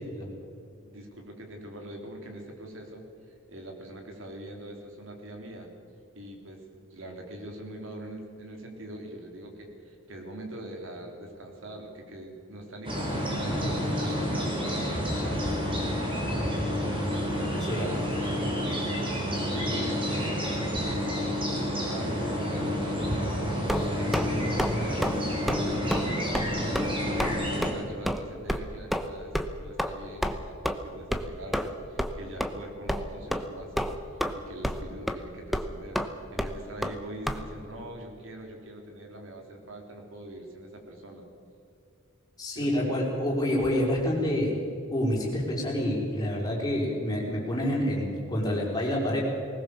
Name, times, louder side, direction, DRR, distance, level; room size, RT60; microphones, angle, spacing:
voice 1, 0.8-5.7 6.1-16.6 17.0-19.1 19.5-21.1 21.5-25.0 25.4-33.9 34.3-36.0 36.3-41.3 42.5-42.9, right 1 dB, 65° right, 2 dB, 3.6 m, -43 dB
sound 1, 12.8-27.7, equal, 25° right, 4.4 m, -29 dB
sound 2, 23.7-24.3 24.6-24.7 25.0-25.2 25.5-25.6 25.9-26.0 26.3-26.5 26.7-26.9 27.2-27.3 27.6-27.7 28.1-28.2 28.5-28.6 28.9-29.1 29.3-29.5 29.8-29.9 30.2-30.3 30.6-30.7 31.1-31.3 31.5-31.7 32.0-32.1 32.4-32.5 32.9-33.0 33.3-33.5 33.8-34.3 34.6-34.8 35.1-35.2 35.5-35.7 35.9-36.1 36.4-36.5 36.8-36.9 37.3-37.4, equal, ahead, 0.9 m, -28 dB
voice 2, 42.4-44.5 44.9-49.2, left 1 dB, 20° left, -3 dB, 5.0 m, -27 dB
20.0 x 18.5 x 7.1 m, 2.4 s
head